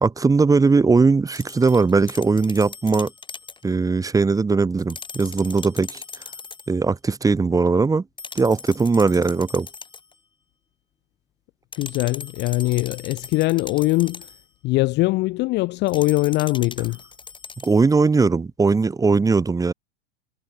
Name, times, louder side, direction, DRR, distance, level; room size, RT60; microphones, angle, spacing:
voice 1, 0.0-3.1 3.6-6.0 6.7-8.0 8.3-9.7 17.6-19.7, right 4 dB, 10° right, 1.3 m, -19 dB
sound 1, 1.4-3.6 4.8-6.7 8.2-10.1 11.7-14.4 15.9-17.9, left 5 dB, 15° left, 3.9 m, -39 dB
voice 2, 11.8-14.3 14.6-17.0, left 21 dB, 30° left, 0.7 m, -22 dB
figure-of-eight pair, 90°, 35 cm